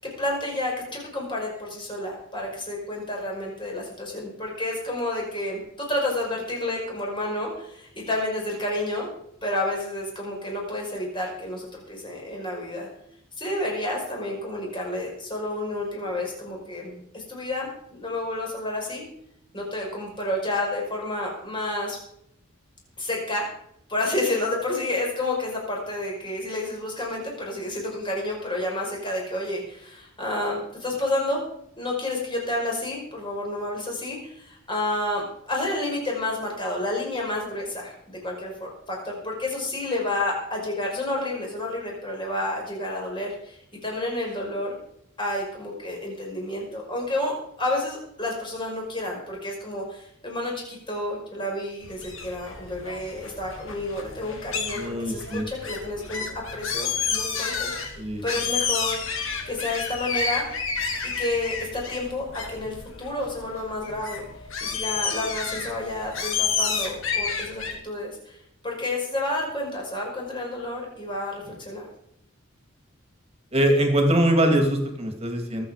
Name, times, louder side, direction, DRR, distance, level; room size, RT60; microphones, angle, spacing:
voice 1, 0.0-9.1 9.4-12.9 13.4-19.1 19.5-22.0 23.0-23.4 23.9-31.4 31.8-44.7 45.2-59.0 59.5-60.4 61.0-64.3 64.6-68.4 68.6-71.9, left 1 dB, 25° left, -1 dB, 5.3 m, -30 dB
sound 1, 51.8-67.7, left 5 dB, 65° left, 2.9 m, -30 dB
voice 2, 54.7-55.4 58.0-58.2 73.5-75.7, right 1 dB, 30° right, 3 dB, 2.7 m, -22 dB
23.0 x 8.1 x 5.1 m, 0.72 s
head